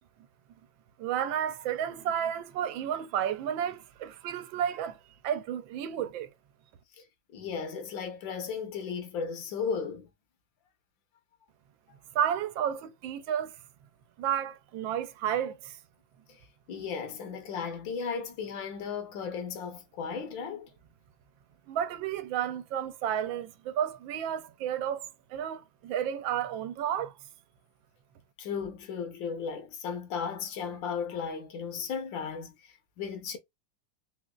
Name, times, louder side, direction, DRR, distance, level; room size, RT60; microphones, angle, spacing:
voice 1, 1.0-5.0 5.2-6.3 12.1-13.6 14.2-15.8 21.7-27.1, right 9 dB, 85° right, 1.4 m, -32 dB
voice 2, 7.3-10.1 16.3-16.4 16.7-20.7 28.4-33.4, left 6 dB, 80° left, 1.6 m, -35 dB
3.9 x 3.0 x 2.3 m
omnidirectional pair, 2.1 m